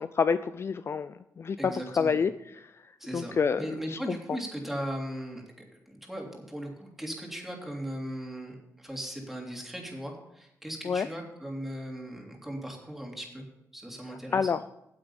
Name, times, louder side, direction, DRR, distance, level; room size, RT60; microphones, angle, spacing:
voice 1, 0.2-2.7 3.1-4.0 4.3-4.4 10.8-11.1 14.3-14.6, left 6 dB, 45° left, 12 dB, 0.4 m, -28 dB
voice 2, 1.6-2.2 3.0-5.4 5.9-13.4 13.7-14.5, equal, 5° right, 0 dB, 3.1 m, -38 dB
9.0 x 8.0 x 7.1 m, 0.84 s
cardioid pair, 90°, 6 cm